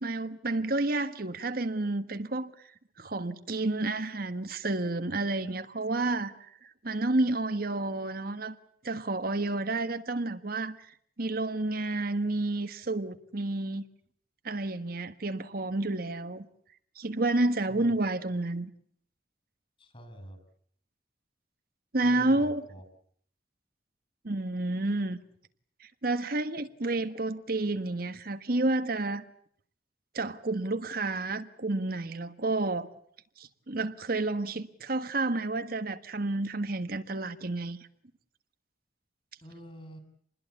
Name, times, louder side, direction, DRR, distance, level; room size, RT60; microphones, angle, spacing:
voice 1, 0.0-2.5 3.0-6.3 6.6-8.5 8.8-10.9 11.2-13.8 14.4-16.5 17.0-18.7 21.9-22.6 24.2-25.2 25.8-29.2 30.1-32.9 33.4-37.8, right 2 dB, 55° right, 1.4 m, -30 dB
voice 2, 19.8-20.4 22.0-22.8 39.4-40.0, equal, 30° left, 6.7 m, -46 dB
27.0 x 21.0 x 8.4 m
head